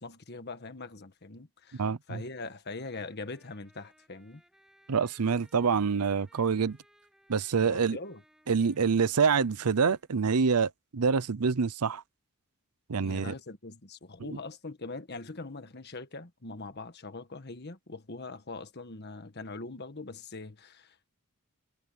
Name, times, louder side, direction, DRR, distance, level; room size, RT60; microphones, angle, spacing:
voice 1, 0.0-4.4 7.6-8.2 13.0-21.1, left 3 dB, 50° left, 1.5 m, -42 dB
voice 2, 1.8-2.2 4.9-6.8 7.3-8.0 8.5-12.0 12.9-13.3 14.2-14.4, right 5 dB, 85° right, 0.7 m, -26 dB
Trumpet, 2.7-10.1, equal, ahead, 7.7 m, -65 dB
head